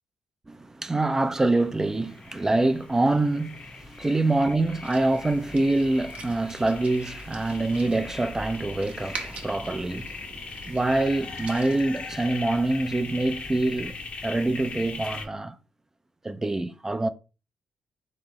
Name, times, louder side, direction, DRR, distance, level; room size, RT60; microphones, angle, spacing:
voice 1, 0.5-10.1 10.7-14.0 14.2-15.6 16.2-17.1, right 2 dB, 20° right, 0.4 m, -25 dB
sound 1, 1.5-15.3, left 4 dB, 45° left, 0.7 m, -40 dB
sound 2, 4.8-11.8, right 4 dB, 55° right, 0.8 m, -44 dB
3.9 x 3.1 x 3.7 m
cardioid pair, 75°, 3 cm